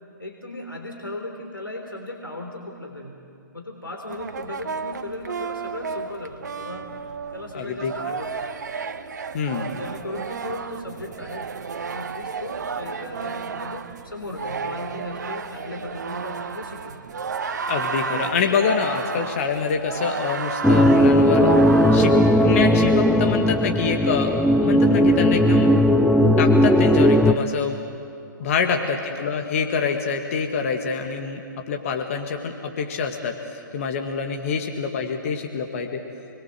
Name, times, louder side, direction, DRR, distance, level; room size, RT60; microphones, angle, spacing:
voice 1, 0.2-3.2 3.5-6.8 7.3-8.5 9.7-11.5 11.9-17.0 28.7-28.9 34.4-34.5, left 1 dB, 85° left, 2 dB, 3.8 m, -37 dB
sound 1, 4.1-22.8, right 5 dB, 55° right, 1.2 m, -32 dB
voice 2, 7.5-7.9 9.3-9.7 17.7-21.5 21.9-22.1 22.4-24.3 24.6-25.7 26.4-27.8 28.4-31.4 31.7-36.0, left 6 dB, 40° left, 4 dB, 2.0 m, -26 dB
sound 2, 20.6-27.3, equal, ahead, 0.7 m, -17 dB
29.5 x 22.0 x 7.7 m, 2.6 s
figure-of-eight pair, 125°, 11 cm